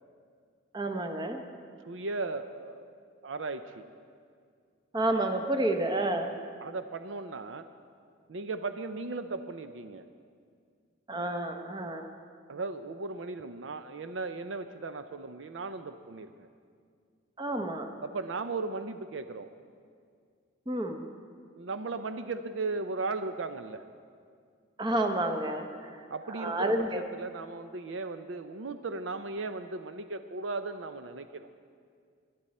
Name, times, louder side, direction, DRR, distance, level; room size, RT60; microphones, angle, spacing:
voice 1, 0.7-1.4 4.9-6.3 11.1-12.1 17.4-17.9 20.7-21.0 24.8-27.0, right 1 dB, 20° right, 5 dB, 0.9 m, -30 dB
voice 2, 1.9-2.8 3.2-3.9 6.6-7.7 8.3-10.0 12.5-16.5 18.0-19.5 21.6-23.8 26.1-31.5, right 3 dB, 70° right, 9 dB, 0.5 m, -36 dB
21.0 x 11.0 x 4.2 m, 2.1 s
head